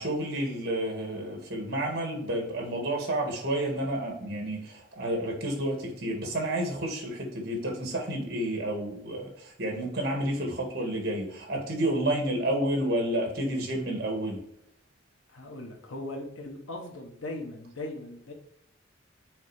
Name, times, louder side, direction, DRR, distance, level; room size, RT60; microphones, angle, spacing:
voice 1, 0.0-14.4, right 1 dB, 50° right, 1 dB, 1.9 m, -30 dB
voice 2, 15.3-18.3, left 2 dB, 85° left, 1 dB, 1.2 m, -39 dB
6.3 x 4.3 x 4.9 m, 0.71 s
head